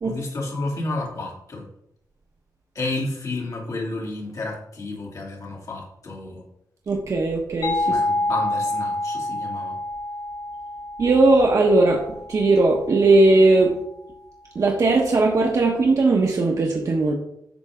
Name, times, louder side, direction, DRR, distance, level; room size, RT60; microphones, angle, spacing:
voice 1, 0.0-1.7 2.7-6.4 7.8-9.8, left 2 dB, 50° left, -3 dB, 3.1 m, -31 dB
voice 2, 6.9-8.0 11.0-12.0 12.3-13.7 14.5-17.1, right 2 dB, 50° right, 0 dB, 1.2 m, -18 dB
sound 1, 7.6-13.1, left 2 dB, 75° left, 2.6 m, -28 dB
11.5 x 7.0 x 3.7 m, 0.78 s
wide cardioid pair, 165°, 7 cm